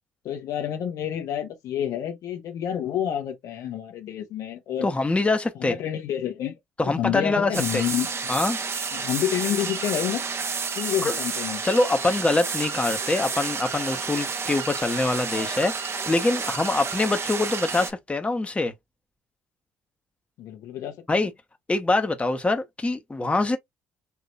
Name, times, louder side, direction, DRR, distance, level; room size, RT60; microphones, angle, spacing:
voice 1, 0.2-4.9 5.6-6.5 6.9-8.1 8.9-10.2 10.8-11.6 20.4-21.3, left 10 dB, 65° left, 1.1 m, -29 dB
voice 2, 4.8-5.7 6.8-7.8 8.3-8.6 11.0-11.1 11.6-18.7 21.1-21.3 21.7-23.6, left 2 dB, 20° left, 1.1 m, -24 dB
sound 1, 7.5-17.9, right 5 dB, 40° right, 1.2 m, -30 dB
5.8 x 2.9 x 2.4 m
hypercardioid pair, 55°, 6 cm